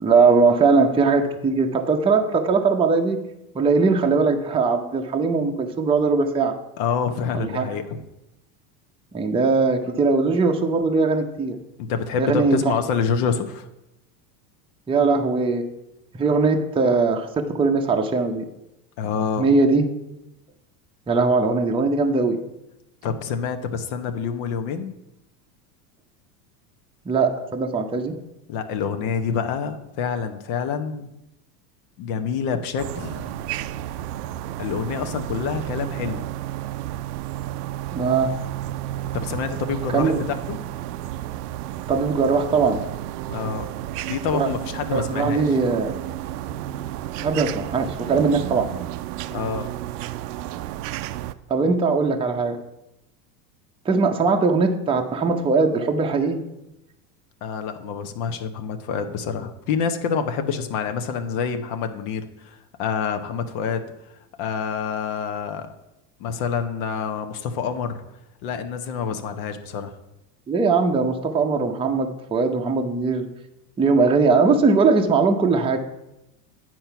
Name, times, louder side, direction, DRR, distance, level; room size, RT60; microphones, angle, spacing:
voice 1, 0.0-3.2 3.5-6.6 7.3-7.7 9.1-11.6 12.2-12.7 14.9-15.7 16.2-18.5 19.4-19.9 21.1-22.4 27.1-28.1 37.9-38.3 39.9-40.2 41.9-42.8 44.3-44.5 44.9-45.9 47.2-48.7 51.5-52.6 53.8-56.4 70.5-73.3 73.8-75.8, right 4 dB, 10° right, 3 dB, 0.7 m, -20 dB
voice 2, 6.8-8.0 11.8-13.7 19.0-19.5 23.0-25.0 28.5-31.1 32.0-33.3 34.6-36.2 39.2-40.6 43.3-43.7 44.0-45.5 49.3-49.7 57.4-63.8 64.4-65.7 66.2-68.0 68.4-69.9, left 6 dB, 60° left, 7 dB, 1.0 m, -27 dB
sound 1, 32.8-51.3, right 13 dB, 75° right, 0.6 m, -32 dB
8.7 x 4.6 x 5.7 m, 0.89 s
supercardioid pair, 110°, 47 cm